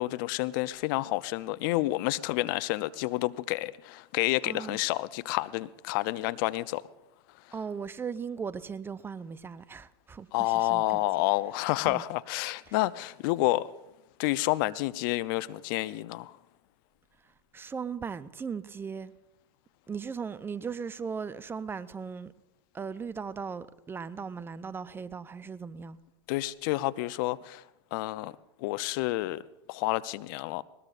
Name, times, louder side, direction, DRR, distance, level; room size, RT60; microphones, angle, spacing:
voice 1, 0.0-6.8 10.3-13.7 14.2-16.4 26.3-27.6 27.9-28.3 28.6-29.4 29.7-30.6, left 18 dB, 50° left, 0.5 m, -29 dB
voice 2, 4.4-4.8 7.5-11.0 11.8-12.0 12.7-12.8 17.5-19.1 19.9-22.3 22.7-26.0, right 6 dB, 15° right, 0.5 m, -38 dB
20.0 x 19.5 x 2.5 m
hypercardioid pair, 100°, 14 cm